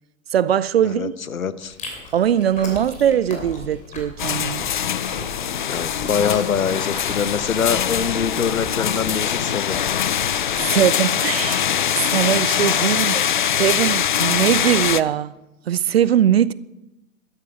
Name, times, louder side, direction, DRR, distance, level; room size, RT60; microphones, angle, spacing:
voice 1, 0.3-1.1 2.1-4.7 10.6-11.7 12.1-13.3 13.6-15.3 15.7-16.5, right 10 dB, 45° right, 0.5 m, -20 dB
voice 2, 0.8-1.8 5.5-9.8 10.7-10.8 12.6-13.0, left 7 dB, 70° left, 1.0 m, -25 dB
Chewing mastication, 1.6-10.9, left 3 dB, 15° left, 2.8 m, -37 dB
sound 1, 4.2-15.0, left 9 dB, 40° left, 0.4 m, -23 dB
13.0 x 12.5 x 4.9 m
figure-of-eight pair, 115°, 43 cm